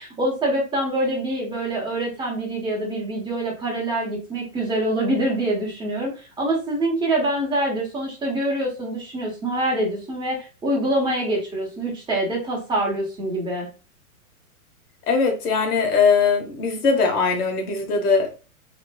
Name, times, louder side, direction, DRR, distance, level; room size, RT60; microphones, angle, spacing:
voice 1, 0.0-13.7, right 1 dB, 10° right, 1.2 m, -25 dB
voice 2, 15.1-18.3, left 5 dB, 75° left, 1.3 m, -20 dB
3.0 x 3.0 x 2.3 m
hypercardioid pair, 135°, 45 cm